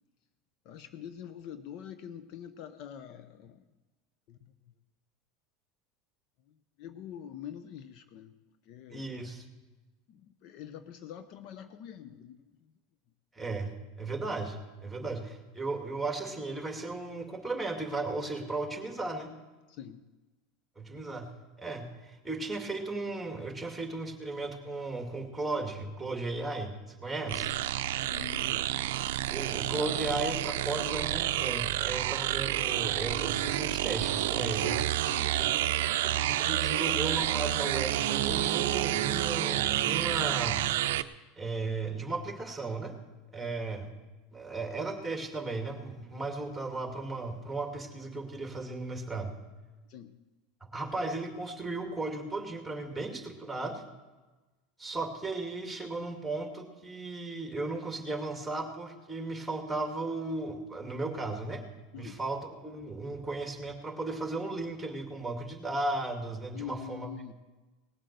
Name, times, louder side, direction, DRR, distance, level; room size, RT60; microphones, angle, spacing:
voice 1, 0.6-3.6 4.3-4.4 6.5-8.3 8.7-9.1 10.1-12.7 19.7-20.0 28.0-28.6 35.0-35.3 43.4-43.5 49.9-50.1 61.9-62.2 66.5-67.3, left 9 dB, 55° left, 11 dB, 0.7 m, -45 dB
voice 2, 8.9-9.4 13.4-19.3 20.8-21.3 21.6-27.5 29.3-34.9 35.4-40.7 41.4-42.9 43.3-43.9 44.3-49.4 50.6-53.8 54.8-61.6 62.0-67.1, right 2 dB, 5° right, 3 dB, 2.4 m, -36 dB
sound 1, 27.3-41.0, right 13 dB, 80° right, 0.5 m, -29 dB
18.5 x 7.5 x 6.8 m, 1.2 s
supercardioid pair, 115°, 0 cm